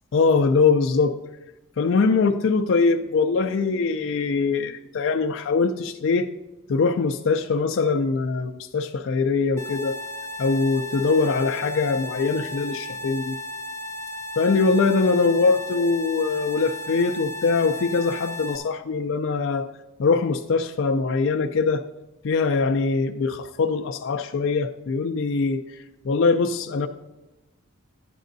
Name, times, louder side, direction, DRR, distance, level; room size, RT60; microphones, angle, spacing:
voice 1, 0.1-1.1 1.8-6.3 6.7-10.0 10.4-13.3 14.4-19.7 20.0-21.8 22.2-25.6 26.0-26.9, left 4 dB, 60° left, 5 dB, 0.4 m, -22 dB
sound 1, 9.6-18.6, left 1 dB, 15° left, 0.8 m, -35 dB
11.5 x 9.1 x 2.6 m, 1.1 s
head